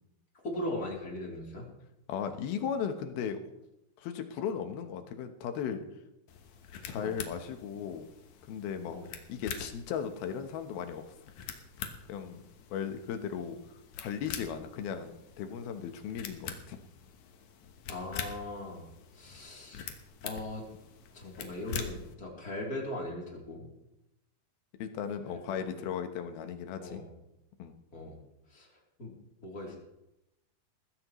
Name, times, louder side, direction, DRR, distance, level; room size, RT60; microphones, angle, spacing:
voice 1, 0.4-1.7 6.9-7.2 8.9-9.1 17.9-18.8 19.1-19.9 20.2-20.7 21.1-23.7 25.3-25.6 26.8-27.1 27.9-28.2 28.5-29.1 29.4-29.8, left 1 dB, 25° left, -2 dB, 3.5 m, -39 dB
voice 2, 2.1-3.4 4.0-5.9 6.9-8.1 8.5-9.0 9.3-11.0 12.1-12.4 12.7-13.6 14.0-16.8 24.8-27.0 27.6-27.7, left 7 dB, 90° left, 7 dB, 3.1 m, -36 dB
sound 1, 6.3-22.1, left 7 dB, 65° left, 2.3 m, -45 dB
20.5 x 15.5 x 3.1 m, 0.91 s
omnidirectional pair, 4.2 m